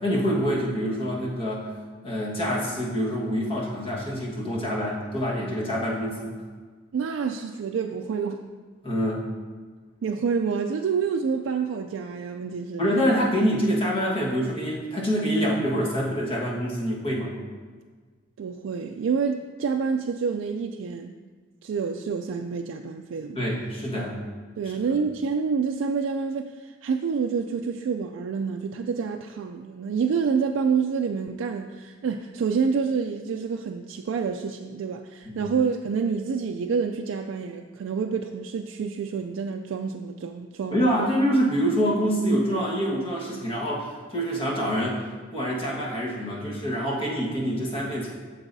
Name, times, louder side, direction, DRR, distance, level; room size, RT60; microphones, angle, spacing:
voice 1, 0.0-1.7 2.0-6.3 8.8-9.3 12.8-17.4 23.4-24.1 35.2-35.4 40.7-45.0 45.3-48.1, equal, 30° left, -4 dB, 1.5 m, -26 dB
voice 2, 6.9-8.5 10.0-12.8 18.4-21.2 21.6-23.4 24.6-40.8, right 5 dB, 90° right, 4 dB, 0.3 m, -28 dB
13.0 x 4.8 x 2.7 m, 1.5 s
head